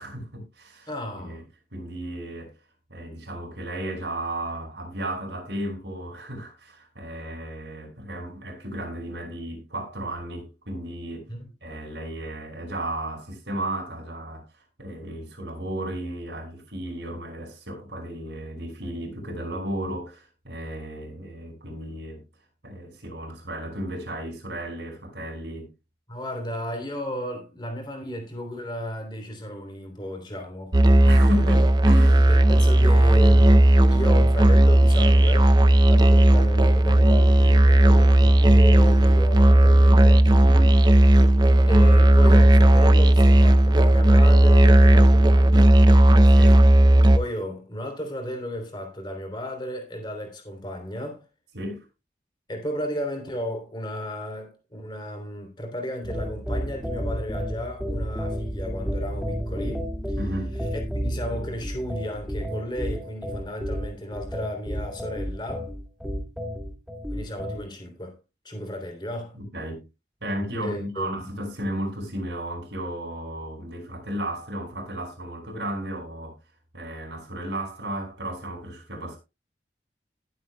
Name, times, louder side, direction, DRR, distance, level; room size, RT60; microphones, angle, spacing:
voice 1, 0.0-1.4 1.7-2.5 2.9-11.3 11.6-14.4 14.8-22.2 22.6-25.7 31.0-32.3 40.4-40.8 46.3-46.6 51.5-51.8 60.2-60.5 69.3-69.9 70.2-76.4 76.7-79.2, right 1 dB, 75° right, 5.5 m, -34 dB
voice 2, 0.9-1.4 11.3-11.5 26.1-30.8 32.2-35.5 35.9-40.3 41.6-45.7 47.1-51.2 52.5-60.2 60.7-65.7 67.1-68.2 68.4-69.4 70.6-71.3, equal, 25° left, 3.1 m, -34 dB
Musical instrument, 30.7-47.2, right 1 dB, 25° right, 0.5 m, -15 dB
sound 1, 56.0-67.6, equal, ahead, 2.1 m, -31 dB
19.0 x 8.0 x 2.2 m
head